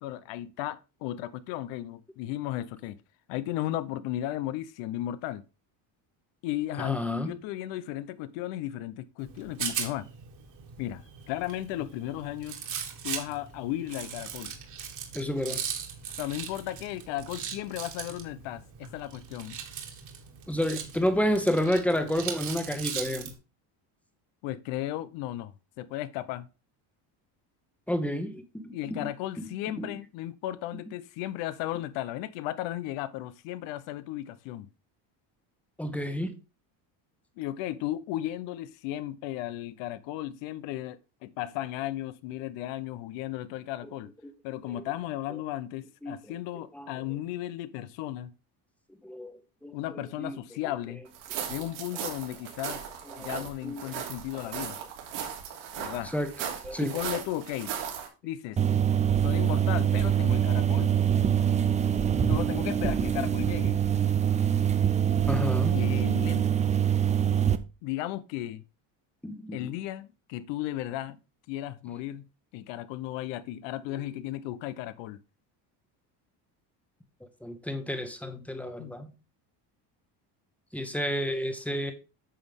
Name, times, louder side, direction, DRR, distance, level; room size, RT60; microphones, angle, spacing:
voice 1, 0.0-3.0 3.3-5.4 6.4-10.1 10.8-12.6 13.0-14.6 16.2-19.6 24.4-26.5 28.7-34.7 37.4-44.1 44.4-48.3 49.7-51.0 51.5-52.8 53.2-54.8 55.8-56.1 56.8-57.7 58.2-58.6 59.2-61.0 62.3-63.8 65.7-66.5 67.8-68.6 69.5-71.2 71.5-72.3 72.5-75.2 78.8-79.0, left 14 dB, 85° left, 0.8 m, -35 dB
voice 2, 6.8-7.3 15.1-15.6 20.5-23.3 27.9-29.1 29.4-29.5 29.8-29.9 35.8-36.4 43.8-43.9 44.7-44.8 46.0-46.3 46.7-46.9 49.0-50.4 52.7-52.8 53.2-53.3 53.6-53.8 56.1-56.3 56.6-56.9 59.3-59.4 65.3-65.8 69.2-69.7 77.4-79.1 80.7-81.9, left 1 dB, 5° left, 1.1 m, -30 dB
Rattle, 9.2-23.3, right 7 dB, 45° right, 2.0 m, -39 dB
sound 1, 51.1-58.1, right 8 dB, 80° right, 3.1 m, -37 dB
sound 2, 58.6-67.6, right 9 dB, 15° right, 0.4 m, -24 dB
9.2 x 6.3 x 3.5 m
cardioid pair, 160°, 43 cm